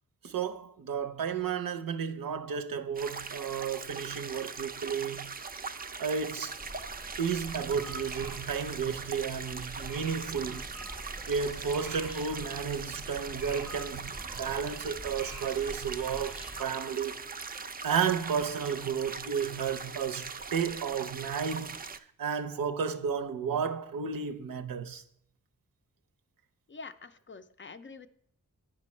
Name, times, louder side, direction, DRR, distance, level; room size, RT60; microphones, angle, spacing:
voice 1, 0.2-5.3 6.0-6.6 7.2-10.8 11.3-17.2 17.8-21.8 22.2-25.0, right 6 dB, 80° right, 0.6 m, -32 dB
sound 1, 2.9-22.0, right 5 dB, 30° right, 0.4 m, -41 dB
sound 2, 6.6-16.6, right 1 dB, ahead, 0.7 m, -45 dB
voice 2, 26.7-28.1, left 4 dB, 35° left, 0.4 m, -46 dB
8.6 x 5.3 x 4.2 m
cardioid pair, 55°, 34 cm